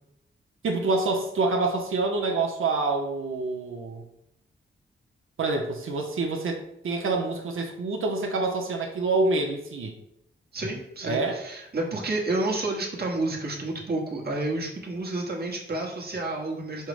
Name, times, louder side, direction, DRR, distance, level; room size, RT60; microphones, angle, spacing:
voice 1, 0.6-4.0 5.4-9.9 11.0-11.4, right 3 dB, 80° right, 1 dB, 0.7 m, -27 dB
voice 2, 10.5-16.9, right 2 dB, 50° right, -1 dB, 1.1 m, -30 dB
5.5 x 2.0 x 4.7 m, 0.81 s
wide cardioid pair, 110°, 21 cm